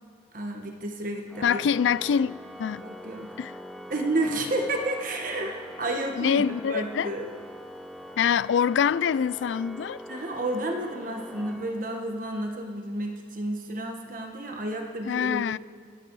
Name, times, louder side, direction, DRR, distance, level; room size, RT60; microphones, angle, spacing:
voice 1, 0.3-1.6 2.8-3.3 3.9-7.3 10.1-15.6, right 1 dB, 50° right, 1.4 m, -31 dB
Organ, 1.3-12.2, equal, ahead, 0.6 m, -43 dB
voice 2, 1.4-2.8 3.4-3.5 6.2-7.1 8.2-10.0 15.1-15.6, left 7 dB, 80° left, 0.3 m, -25 dB
25.5 x 9.4 x 4.7 m
head